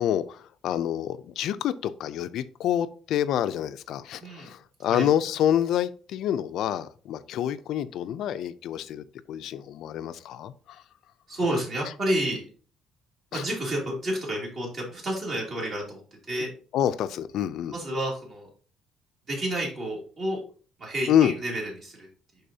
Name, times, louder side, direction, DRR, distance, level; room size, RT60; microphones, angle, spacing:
voice 1, 0.0-10.8 13.3-13.4 16.7-17.7 21.1-21.3, left 10 dB, 60° left, 12 dB, 0.4 m, -27 dB
voice 2, 4.2-4.5 4.9-5.1 11.3-12.4 13.3-16.0 16.3-16.5 17.7-18.5 19.3-20.4 20.8-22.1, right 1 dB, 40° right, -3 dB, 2.8 m, -30 dB
10.5 x 4.0 x 2.8 m, 0.40 s
cardioid pair, 175°, 0 cm